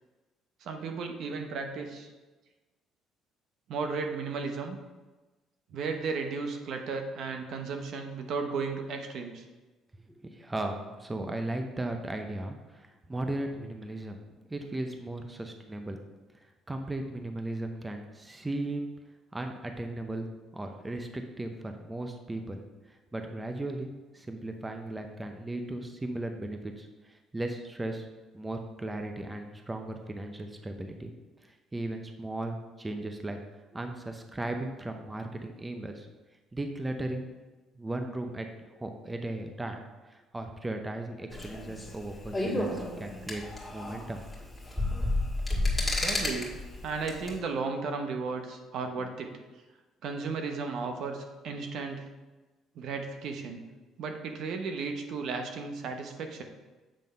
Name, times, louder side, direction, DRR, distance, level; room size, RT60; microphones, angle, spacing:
voice 1, 0.6-2.1 3.7-4.8 5.7-9.4 45.8-46.5 46.8-49.3 50.0-52.1 52.7-53.6 54.0-56.4, right 4 dB, 65° right, 4 dB, 0.9 m, -34 dB
voice 2, 10.2-14.2 14.5-16.0 16.4-18.9 19.3-20.3 20.5-22.6 22.9-28.1 28.3-31.1 31.4-33.4 33.7-36.1 36.5-37.3 37.8-38.5 38.8-43.4 43.7-44.2, right 1 dB, 15° right, 5 dB, 0.7 m, -36 dB
sound 1, 41.3-47.4, left 2 dB, 10° left, 2.0 m, -31 dB
7.7 x 3.6 x 5.4 m, 1.2 s
cardioid pair, 100°, 0 cm